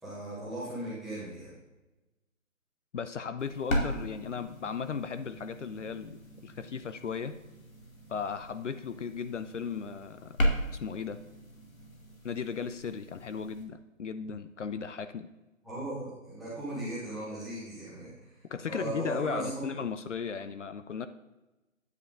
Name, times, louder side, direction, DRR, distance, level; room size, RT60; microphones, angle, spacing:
voice 1, 0.0-1.6 15.6-19.6, right 1 dB, ahead, -12 dB, 1.1 m, -38 dB
voice 2, 2.9-7.3 8.1-10.4 10.8-11.2 12.2-15.3 18.5-21.1, left 6 dB, 60° left, 11 dB, 0.6 m, -36 dB
sound 1, 3.4-13.6, equal, 85° left, 2.5 m, -37 dB
9.6 x 6.7 x 3.7 m, 1.1 s
hypercardioid pair, 165°, 41 cm